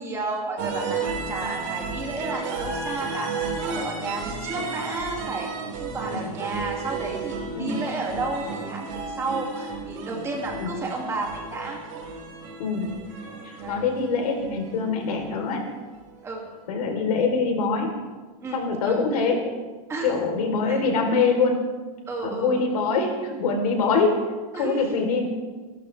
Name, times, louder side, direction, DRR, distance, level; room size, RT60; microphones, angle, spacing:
voice 1, 0.0-11.8 13.4-13.8 16.2-16.5 18.4-19.0 19.9-20.1 20.7-20.8 22.1-22.6 24.5-24.9, right 2 dB, 15° right, -1 dB, 2.3 m, -32 dB
sound 1, 0.6-16.4, right 4 dB, 55° right, 4.6 m, -33 dB
voice 2, 12.6-12.9 13.4-15.6 16.7-17.9 18.5-19.4 20.0-21.7 22.2-24.2 24.5-25.3, left 4 dB, 85° left, 3 dB, 3.7 m, -24 dB
27.0 x 12.0 x 3.4 m, 1.3 s
supercardioid pair, 170°, 19 cm